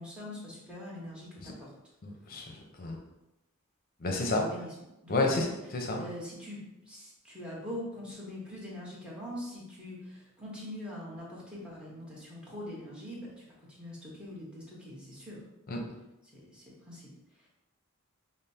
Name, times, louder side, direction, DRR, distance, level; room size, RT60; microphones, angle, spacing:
voice 1, 0.0-1.7 4.3-4.7 5.0-5.5 5.9-15.4 16.3-17.1 17.4-17.5, left 1 dB, 5° right, -6 dB, 1.1 m, -43 dB
voice 2, 2.0-3.0 4.0-4.4 5.1-5.5 5.7-6.0 15.7-15.8, left 2 dB, 45° left, 1 dB, 0.6 m, -30 dB
5.2 x 2.1 x 2.7 m, 0.94 s
head